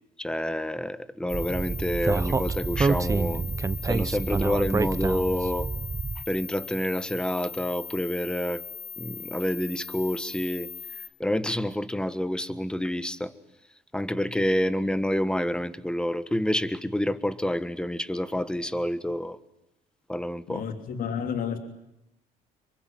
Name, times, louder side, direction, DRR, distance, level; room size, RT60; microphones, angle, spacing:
voice 1, 0.2-3.4 3.9-5.7 6.3-8.6 9.0-10.7 11.2-13.3 13.9-19.4 20.1-20.6, left 1 dB, 5° left, 14 dB, 1.5 m, -28 dB
sound 1, 1.3-11.1, left 7 dB, 75° left, 4.4 m, -40 dB
Speech, 1.3-6.2, right 4 dB, 20° right, 1.1 m, -27 dB
voice 2, 20.5-21.6, left 7 dB, 55° left, 7 dB, 3.2 m, -31 dB
27.0 x 23.5 x 9.2 m, 0.87 s
cardioid pair, 110°, 17 cm